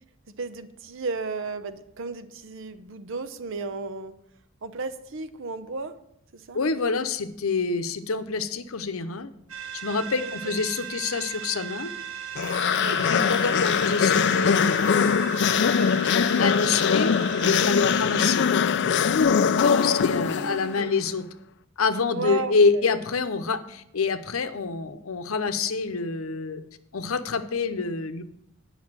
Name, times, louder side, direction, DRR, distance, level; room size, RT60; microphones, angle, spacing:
voice 1, 0.3-4.1 4.6-6.0 6.3-6.6 10.2-10.5 12.8-13.0 19.7-20.9 22.1-22.9, right 4 dB, 65° right, 11 dB, 0.7 m, -34 dB
voice 2, 6.5-9.3 9.7-11.9 12.9-15.4 16.4-18.5 19.0-21.3 21.8-26.6 26.9-28.2, left 4 dB, 90° left, 10 dB, 0.8 m, -27 dB
sound 1, 9.5-18.5, right 9 dB, 85° right, 1.3 m, -38 dB
sound 2, 12.4-20.8, left 7 dB, 55° left, 0.4 m, -22 dB
9.6 x 5.6 x 7.3 m, 0.77 s
head